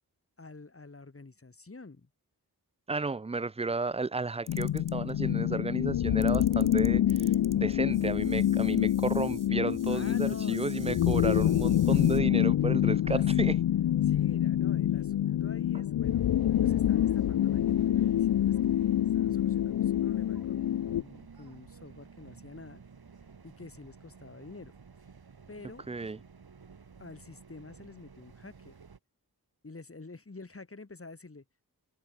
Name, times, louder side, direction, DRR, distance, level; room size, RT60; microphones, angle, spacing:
voice 1, 0.4-2.1 9.9-11.0 13.0-13.6 14.0-22.8 23.4-24.7 25.5-25.8 27.0-28.7 29.6-31.4, left 3 dB, 35° left, 3.9 m, -48 dB
voice 2, 2.9-13.6 25.9-26.2, right 3 dB, 20° right, 0.4 m, -33 dB
sound 1, 4.5-21.0, left 11 dB, 70° left, 0.5 m, -26 dB
sound 2, 4.5-5.1 6.2-12.2, right 4 dB, 55° right, 7.6 m, -52 dB
sound 3, 16.0-29.0, right 5 dB, 75° right, 3.6 m, -52 dB
wide cardioid pair, 95°, 37 cm